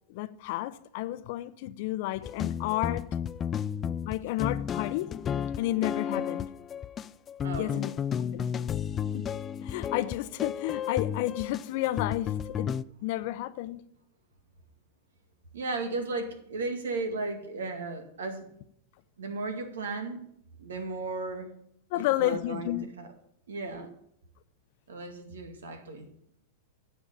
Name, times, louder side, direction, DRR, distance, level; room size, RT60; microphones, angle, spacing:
voice 1, 0.1-3.1 4.0-5.1 5.6-6.5 7.6-7.9 8.3-8.5 9.1-9.3 9.6-12.7 13.0-13.8 21.9-22.9, left 15 dB, 60° left, 0.7 m, -31 dB
sound 1, 2.2-12.8, left 8 dB, 25° left, 0.4 m, -33 dB
voice 2, 7.4-7.8 15.5-18.5 19.2-20.2 20.6-21.5 21.9-23.1 23.5-23.9 24.9-26.1, right 3 dB, 85° right, 2.1 m, -35 dB
10.5 x 5.5 x 8.5 m
hypercardioid pair, 110°, 0 cm